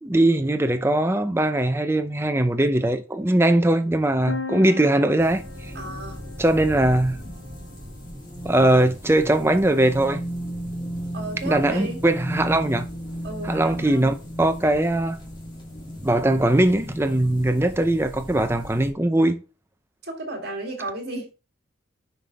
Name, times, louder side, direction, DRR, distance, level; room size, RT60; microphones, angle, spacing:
voice 1, 0.0-5.7 6.4-7.2 8.4-10.2 11.5-12.9 13.4-15.2 16.0-19.4, right 1 dB, 10° right, 0.5 m, -20 dB
sound 1, 4.3-8.0, left 4 dB, 85° left, 0.8 m, -39 dB
sound 2, 5.2-18.9, equal, 20° left, 2.2 m, -35 dB
voice 2, 5.7-6.2 11.1-12.0 13.2-14.1 20.0-21.3, right 2 dB, 50° right, 2.2 m, -33 dB
6.1 x 5.1 x 4.0 m
head